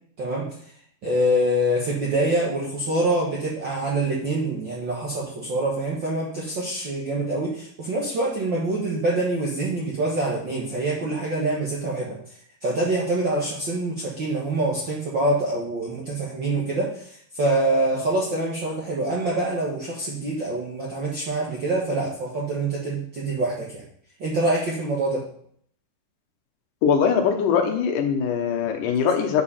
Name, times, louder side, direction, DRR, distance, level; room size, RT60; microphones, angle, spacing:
voice 1, 0.2-0.5 1.0-12.2 12.6-23.8 24.2-25.2, right 1 dB, 55° right, -4 dB, 1.4 m, -25 dB
voice 2, 26.8-29.4, left 7 dB, 75° left, 4 dB, 2.5 m, -21 dB
9.5 x 4.7 x 5.7 m, 0.64 s
omnidirectional pair, 4.0 m